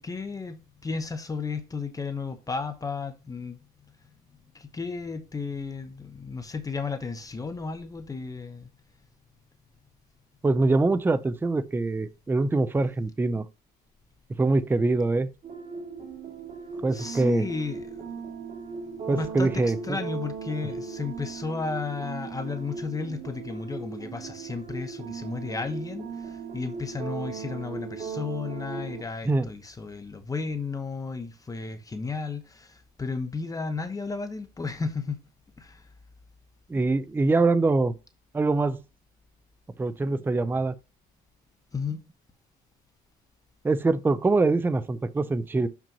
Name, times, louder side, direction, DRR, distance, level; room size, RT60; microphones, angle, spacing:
voice 1, 0.0-3.6 4.5-8.7 16.9-18.2 19.1-35.2 35.6-35.9 41.7-42.0, left 4 dB, 20° left, 0.9 m, -33 dB
voice 2, 10.4-13.5 14.4-15.3 16.8-17.4 19.1-20.0 29.3-29.5 36.7-37.9 38.3-38.8 39.8-40.7 43.6-45.7, right 3 dB, 10° right, 0.5 m, -24 dB
sound 1, 15.4-29.0, right 5 dB, 45° right, 2.4 m, -38 dB
6.8 x 5.9 x 2.9 m
cardioid pair, 110°, 17 cm